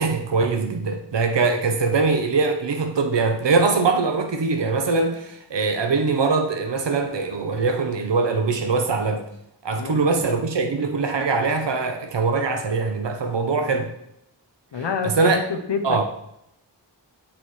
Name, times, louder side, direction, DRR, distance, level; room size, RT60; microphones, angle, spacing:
voice 1, 0.0-9.2 9.6-13.9 15.0-15.4 15.8-16.0, right 4 dB, 75° right, 5 dB, 0.7 m, -22 dB
voice 2, 14.7-16.0, left 5 dB, 75° left, 5 dB, 0.7 m, -28 dB
8.7 x 4.1 x 3.1 m, 0.77 s
wide cardioid pair, 45°, 43 cm